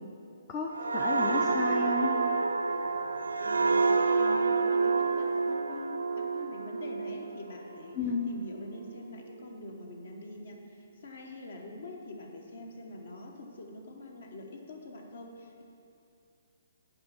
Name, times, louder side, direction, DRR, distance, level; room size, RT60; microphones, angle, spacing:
voice 1, 0.5-2.2 8.0-8.3, left 3 dB, 25° left, 1 dB, 0.5 m, -32 dB
sound 1, 0.7-8.2 8.6-8.9, right 4 dB, 80° right, 0.4 m, -28 dB
voice 2, 3.4-8.0 8.3-15.6, left 2 dB, 60° left, 2 dB, 1.1 m, -45 dB
9.5 x 3.5 x 6.9 m, 2.6 s
figure-of-eight pair, 130°, 0 cm